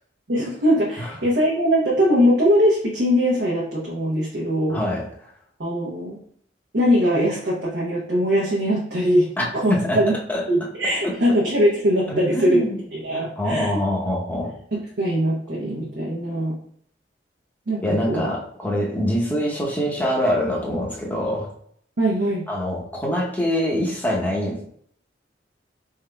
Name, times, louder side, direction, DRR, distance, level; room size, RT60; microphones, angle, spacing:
voice 1, 0.3-4.8 5.6-6.2 6.7-10.2 10.5-12.6 12.9-13.8 14.7-16.6 17.7-18.3 22.0-22.5, equal, 70° right, -5 dB, 0.8 m, -21 dB
voice 2, 4.7-5.0 9.4-10.4 11.0-11.1 12.1-12.8 13.1-14.5 17.8-21.5 22.5-24.6, left 1 dB, 10° left, -2 dB, 0.7 m, -24 dB
4.4 x 3.7 x 2.2 m, 0.63 s
head